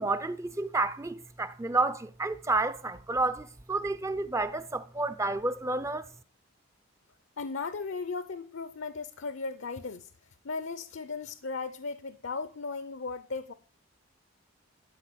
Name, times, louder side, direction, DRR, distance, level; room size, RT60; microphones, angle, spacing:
voice 1, 0.0-6.0, right 3 dB, 15° right, 0.4 m, -30 dB
voice 2, 7.4-10.1 10.4-13.5, left 4 dB, 60° left, 0.6 m, -36 dB
12.5 x 5.1 x 8.4 m
head